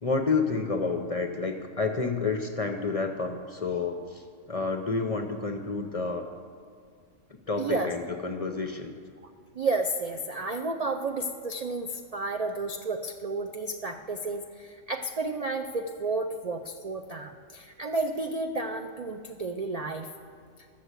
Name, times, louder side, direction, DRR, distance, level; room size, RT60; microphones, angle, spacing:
voice 1, 0.0-6.3 7.5-8.9, left 4 dB, 40° left, 4 dB, 0.5 m, -29 dB
voice 2, 7.6-7.9 9.2-9.3 9.6-20.1, right 3 dB, 75° right, 4 dB, 0.3 m, -32 dB
12.5 x 6.7 x 8.1 m, 2.2 s
omnidirectional pair, 1.4 m